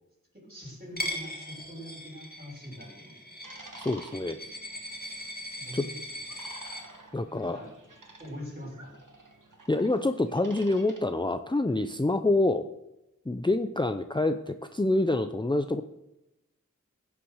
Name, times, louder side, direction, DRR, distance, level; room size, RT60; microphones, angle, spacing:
voice 1, 0.3-3.3 5.5-6.0 6.3-6.4 7.3-7.7 8.2-8.9, equal, 30° right, -1 dB, 5.6 m, -43 dB
Coin (dropping), 1.0-6.8, left 1 dB, 30° left, 2.1 m, -39 dB
sound 1, 3.4-11.0, right 2 dB, 85° right, 1.9 m, -51 dB
voice 2, 3.8-4.4 5.7-5.8 7.1-7.6 9.7-12.6 13.3-15.8, left 2 dB, 15° left, 8 dB, 0.6 m, -26 dB
16.0 x 5.9 x 6.4 m, 0.92 s
wide cardioid pair, 40°, 31 cm